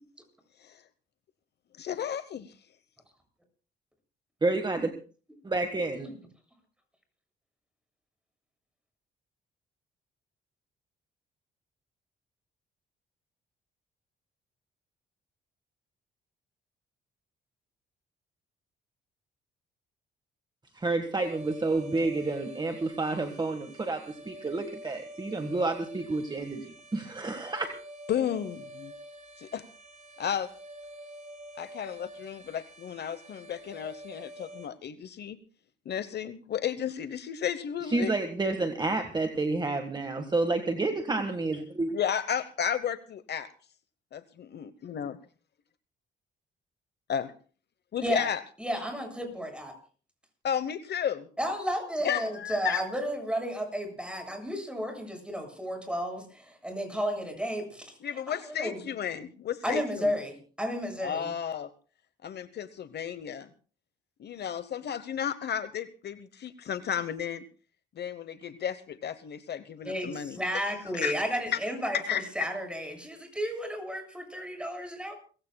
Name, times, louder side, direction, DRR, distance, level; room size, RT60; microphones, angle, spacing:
voice 1, 1.8-2.5 28.1-28.9 29.4-29.6 30.2-30.5 31.6-35.4 35.9-38.1 41.9-43.5 44.1-45.2 47.1-47.3 47.9-48.4 50.4-51.3 52.0-52.8 58.0-60.1 61.0-61.7 62.2-63.5 64.2-67.4 68.0-70.4 71.0-71.1 71.5-71.6 72.1-72.2, left 8 dB, 55° left, 13 dB, 1.0 m, -33 dB
voice 2, 4.4-4.9 5.4-6.1 20.7-27.7 37.9-41.9, right 3 dB, 20° right, 7 dB, 1.6 m, -29 dB
sound 1, 21.2-34.7, right 1 dB, 40° right, 6.9 m, -47 dB
voice 3, 48.6-49.7 51.4-58.0 58.3-58.8 59.6-61.3 69.8-75.1, equal, 5° right, 4 dB, 7.4 m, -33 dB
29.0 x 16.0 x 2.3 m, 0.39 s
cardioid pair, 90°, 20 cm